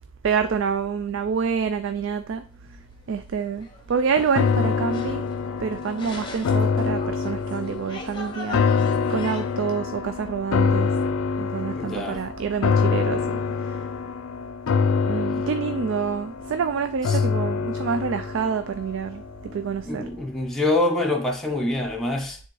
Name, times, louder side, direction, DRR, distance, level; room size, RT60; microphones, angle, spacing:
voice 1, 0.2-2.4 3.1-5.3 5.6-10.9 11.4-13.8 15.0-19.2 19.5-20.0, right 6 dB, 60° right, 0.3 m, -27 dB
sound 1, 2.3-9.6, left 1 dB, 20° left, 1.0 m, -40 dB
sound 2, 4.3-19.6 20.0-20.1, left 5 dB, 70° left, 0.4 m, -25 dB
voice 2, 11.8-12.2 17.1-17.2 19.9-22.4, left 2 dB, ahead, 0.7 m, -25 dB
9.6 x 3.4 x 3.1 m
head